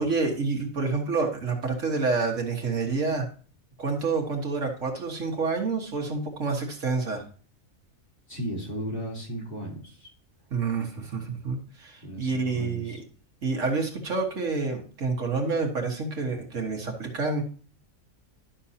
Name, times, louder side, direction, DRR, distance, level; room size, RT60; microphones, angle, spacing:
voice 1, 0.0-3.3 3.8-7.2 10.5-13.0 13.4-17.4, right 4 dB, 65° right, 2 dB, 1.8 m, -28 dB
voice 2, 8.3-10.1 12.0-13.0, right 1 dB, 40° left, -3 dB, 3.8 m, -35 dB
11.5 x 6.3 x 2.8 m, 0.41 s
omnidirectional pair, 1.4 m